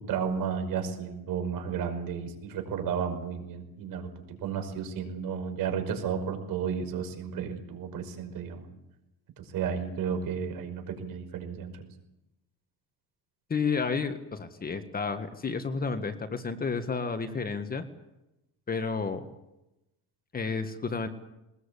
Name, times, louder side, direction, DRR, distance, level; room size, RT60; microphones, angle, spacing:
voice 1, 0.1-8.7 9.4-11.8, right 7 dB, 60° right, 6 dB, 5.5 m, -33 dB
voice 2, 13.5-17.8 18.7-19.2 20.3-21.1, left 5 dB, 25° left, 8 dB, 1.7 m, -31 dB
22.0 x 20.5 x 8.5 m, 0.93 s
cardioid pair, 135°, 38 cm